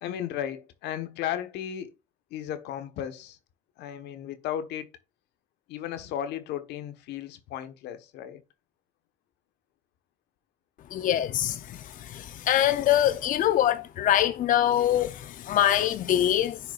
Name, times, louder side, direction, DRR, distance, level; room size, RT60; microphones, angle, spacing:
voice 1, 0.0-1.9 2.3-3.4 3.8-4.9 5.7-8.4, left 10 dB, 85° left, 1.2 m, -35 dB
voice 2, 10.9-16.6, left 11 dB, 55° left, 0.6 m, -24 dB
10.5 x 5.8 x 2.4 m
cardioid pair, 110°, 17 cm